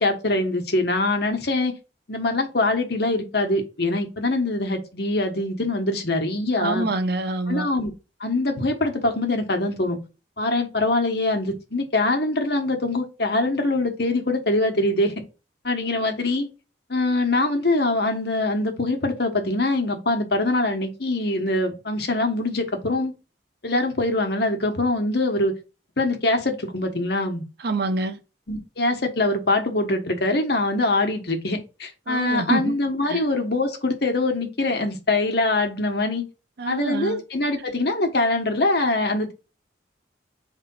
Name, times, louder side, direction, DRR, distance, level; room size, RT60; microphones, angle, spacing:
voice 1, 0.0-1.7 2.1-6.9 7.5-7.9 8.2-10.0 10.4-15.1 15.6-16.5 16.9-23.1 23.6-25.5 26.0-27.4 28.5-36.2 36.6-39.3, left 2 dB, 60° left, 1.4 m, -23 dB
voice 2, 6.6-7.7 27.6-28.2 32.1-32.8 33.1-33.2 36.6-37.2, right 2 dB, 60° right, 0.8 m, -26 dB
4.8 x 3.6 x 5.5 m
head